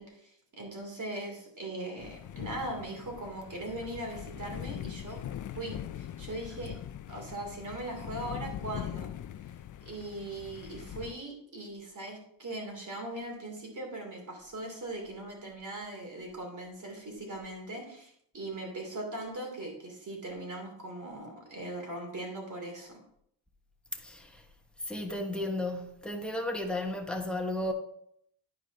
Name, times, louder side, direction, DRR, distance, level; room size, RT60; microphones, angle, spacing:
voice 1, 0.0-5.2 5.5-6.8 7.1-9.1 9.8-23.0, right 1 dB, 40° right, 2.9 m, -40 dB
sound 1, 2.0-11.1, left 10 dB, 45° left, 0.4 m, -42 dB
voice 2, 24.0-24.4 24.9-27.7, left 1 dB, ahead, 1.1 m, -34 dB
10.5 x 4.9 x 4.0 m
cardioid pair, 105°, 45 cm